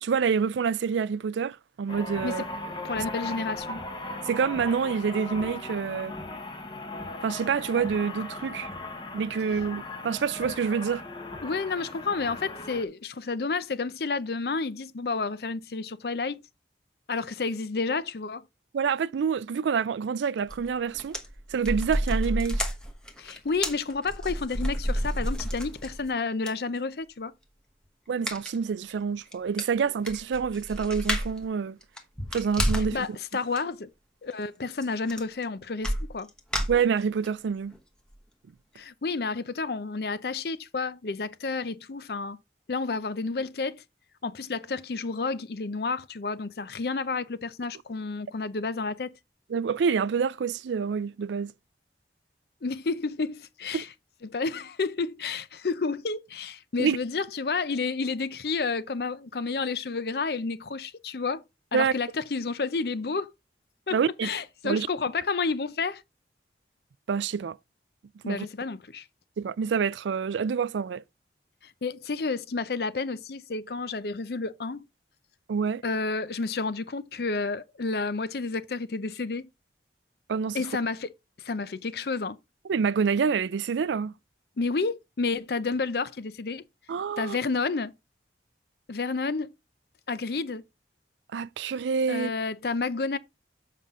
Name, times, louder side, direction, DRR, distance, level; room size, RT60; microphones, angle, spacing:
voice 1, 0.0-2.5 4.3-6.2 7.2-8.7 9.1-11.0 18.7-21.2 21.5-22.7 28.1-31.8 32.3-33.1 36.7-37.7 49.5-51.5 53.7-53.8 56.8-57.0 61.7-61.9 63.9-64.3 64.6-64.9 67.1-67.6 68.3-68.5 69.4-71.0 75.5-75.8 80.3-80.6 82.7-84.1 86.9-87.4 91.3-92.3, right 6 dB, 85° right, 0.4 m, -27 dB
sound 1, 1.9-12.9, left 2 dB, 25° left, 1.1 m, -38 dB
voice 2, 2.8-3.8 11.4-16.4 17.1-18.4 23.2-27.3 32.9-33.9 34.2-36.3 38.8-42.4 42.7-43.8 44.2-49.1 52.6-53.9 54.2-61.4 61.7-63.3 63.9-64.0 64.2-66.0 68.2-69.1 71.6-74.9 75.8-79.5 80.5-81.1 81.4-82.4 84.6-86.6 87.2-87.9 88.9-89.5 90.1-90.6 92.1-93.2, left 4 dB, 60° left, 0.6 m, -30 dB
sound 2, 20.5-20.7 20.9-26.1 26.5-26.6 28.3-28.6 28.9-29.0 29.3-29.4 29.6-31.4 31.8-33.0 33.3-33.6 34.8-34.9 35.1-35.4 35.8-37.3 37.7-37.8 38.1-38.2, equal, 5° left, 1.0 m, -30 dB
7.5 x 5.5 x 3.6 m
head